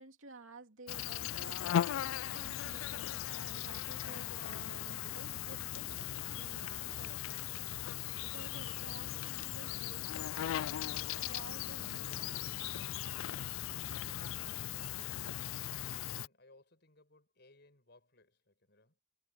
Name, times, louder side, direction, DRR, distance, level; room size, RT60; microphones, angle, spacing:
voice 1, 0.0-7.7 8.2-10.9 11.2-12.9, right 3 dB, 85° right, 2.8 m, -54 dB
Insect, 0.9-16.3, left 11 dB, 85° left, 0.3 m, -38 dB
voice 2, 16.0-19.0, left 2 dB, 55° left, 5.7 m, -65 dB
head